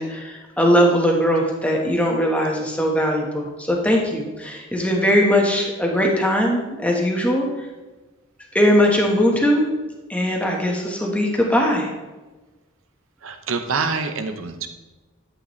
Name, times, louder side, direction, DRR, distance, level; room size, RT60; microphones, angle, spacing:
voice 1, 0.0-7.5 8.5-9.6 10.1-11.9, equal, 5° left, -1 dB, 1.3 m, -20 dB
voice 2, 13.2-14.7, right 4 dB, 85° right, 7 dB, 0.8 m, -26 dB
11.0 x 8.1 x 3.2 m, 1.2 s
head